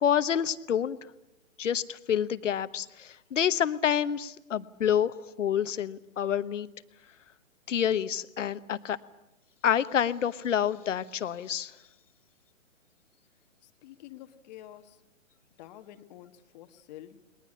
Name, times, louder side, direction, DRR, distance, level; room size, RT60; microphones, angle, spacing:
voice 1, 0.0-1.0 1.6-6.7 7.7-9.0 9.6-11.7, left 9 dB, 70° left, 14 dB, 1.2 m, -28 dB
voice 2, 13.6-15.0 15.6-17.3, left 13 dB, 35° left, 9 dB, 1.3 m, -49 dB
21.0 x 20.0 x 9.8 m, 0.93 s
hypercardioid pair, 140°, 39 cm